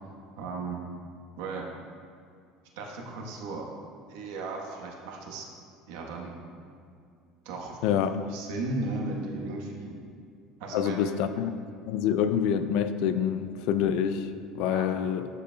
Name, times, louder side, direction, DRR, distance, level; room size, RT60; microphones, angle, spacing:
voice 1, 0.3-0.8 1.4-1.7 2.8-3.7 4.1-5.5 5.9-6.3 7.4-7.8 8.3-10.0 10.6-11.0 14.7-15.0, right 3 dB, 80° right, 0 dB, 1.1 m, -35 dB
voice 2, 7.8-8.2 10.7-11.5 11.9-14.3 14.5-15.3, left 8 dB, 65° left, 11 dB, 0.3 m, -26 dB
11.5 x 5.0 x 2.2 m, 2.4 s
cardioid pair, 155°, 0 cm